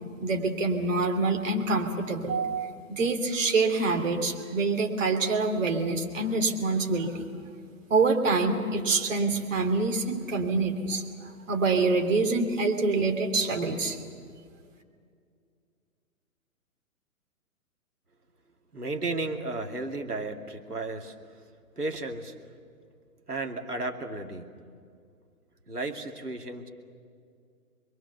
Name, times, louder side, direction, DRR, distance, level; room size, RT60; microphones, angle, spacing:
voice 1, 0.2-7.3 7.9-14.0, right 3 dB, 55° right, 3 dB, 3.2 m, -26 dB
voice 2, 18.7-21.1 21.8-22.3 23.3-24.5 25.7-26.7, right 2 dB, 85° right, 3 dB, 2.5 m, -33 dB
27.0 x 22.5 x 6.9 m, 2.2 s
figure-of-eight pair, 125°, 45 cm